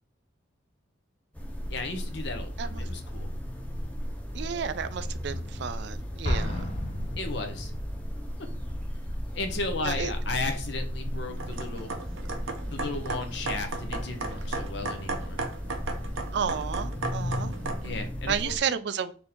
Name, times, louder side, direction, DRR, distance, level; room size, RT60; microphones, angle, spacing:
sound 1, 1.3-18.6, equal, 5° left, 0.6 m, -35 dB
voice 1, 1.7-3.3 7.2-7.7 9.3-11.9 12.7-15.4 17.8-18.8, left 3 dB, 60° left, 0.7 m, -35 dB
voice 2, 4.3-6.7 9.8-10.1 11.3-11.4 16.3-17.5 18.3-19.1, right 7 dB, 55° right, 0.3 m, -32 dB
Explosion, 6.2-8.0, left 1 dB, 35° left, 0.9 m, -32 dB
sound 2, 11.4-18.0, right 3 dB, 80° right, 0.7 m, -36 dB
4.3 x 2.8 x 3.5 m
head